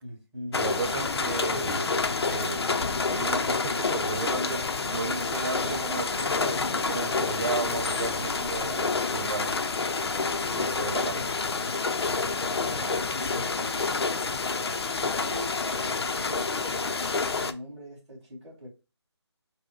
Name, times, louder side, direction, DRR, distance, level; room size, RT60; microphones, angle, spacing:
voice 1, 0.0-0.6 6.9-7.3 12.7-14.0 15.0-16.9 17.4-18.7, equal, 20° right, 2.1 m, -42 dB
sound 1, 0.5-17.5, left 4 dB, 65° left, 0.6 m, -28 dB
voice 2, 0.5-2.8 3.1-9.5 10.5-11.3, right 5 dB, 50° right, 0.5 m, -35 dB
4.1 x 2.2 x 4.6 m
figure-of-eight pair, 160°, 15 cm